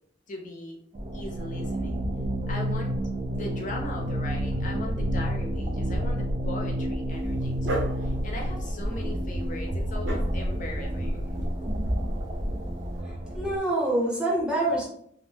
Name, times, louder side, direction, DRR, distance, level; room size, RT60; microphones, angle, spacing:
voice 1, 0.3-0.8 1.1-2.0 2.5-2.9 3.3-11.3, left 2 dB, 45° left, 0 dB, 0.6 m, -39 dB
sound 1, 0.9-13.6, equal, 30° right, 0.3 m, -30 dB
Dog, 7.1-13.0, equal, 75° right, 0.7 m, -35 dB
voice 2, 13.0-14.8, right 1 dB, 5° right, -5 dB, 0.7 m, -26 dB
2.6 x 2.0 x 3.2 m, 0.68 s
head